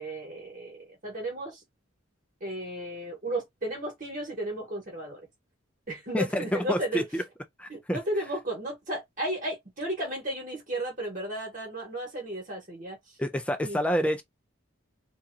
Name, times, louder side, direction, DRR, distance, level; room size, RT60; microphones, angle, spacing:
voice 1, 0.0-1.6 2.4-5.2 5.9-7.1 7.7-13.0 13.6-13.8, right 1 dB, 40° right, 1.2 m, -34 dB
voice 2, 6.1-7.2 7.6-8.0 13.2-14.2, equal, 5° left, 0.3 m, -28 dB
2.7 x 2.3 x 2.5 m
head